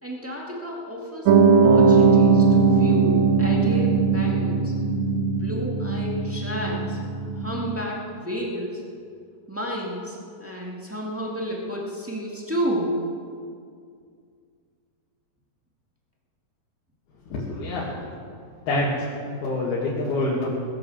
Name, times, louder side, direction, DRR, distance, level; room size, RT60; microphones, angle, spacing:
voice 1, 0.0-4.7 5.3-8.8 9.5-13.1, equal, 15° right, -3 dB, 0.5 m, -31 dB
Piano, 1.3-7.8, right 5 dB, 75° right, 1.7 m, -19 dB
voice 2, 17.3-18.0 18.7-19.1 19.4-20.5, left 2 dB, 80° left, -6 dB, 3.9 m, -26 dB
18.5 x 10.5 x 7.1 m, 2.2 s
omnidirectional pair, 4.3 m